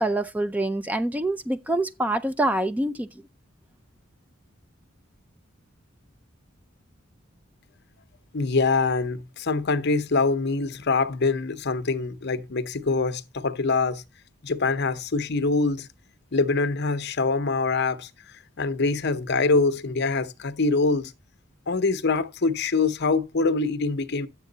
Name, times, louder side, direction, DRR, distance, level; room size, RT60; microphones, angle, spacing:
voice 1, 0.0-3.1, right 1 dB, 10° right, 0.4 m, -25 dB
voice 2, 8.3-14.0 14.4-15.9 16.3-18.1 18.6-21.1 21.7-24.3, left 3 dB, 55° left, 0.8 m, -24 dB
10.5 x 7.4 x 3.9 m
head